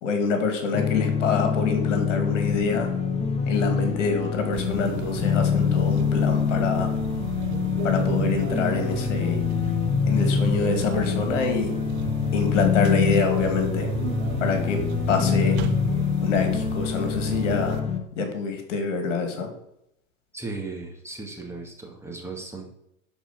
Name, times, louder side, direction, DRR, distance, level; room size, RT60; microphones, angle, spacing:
voice 1, 0.0-2.9 3.5-6.9 7.8-9.4 10.0-11.7 12.3-13.9 14.4-15.6 16.2-17.8 18.2-19.5, left 4 dB, 60° left, 5 dB, 2.4 m, -26 dB
sound 1, 0.7-18.0, left 7 dB, 15° left, 1.2 m, -25 dB
quiet room, 4.5-17.8, right 6 dB, 50° right, 1.3 m, -33 dB
voice 2, 20.3-22.7, right 3 dB, 5° right, 0 dB, 2.0 m, -36 dB
12.0 x 4.6 x 6.0 m, 0.80 s
figure-of-eight pair, 95°, 41 cm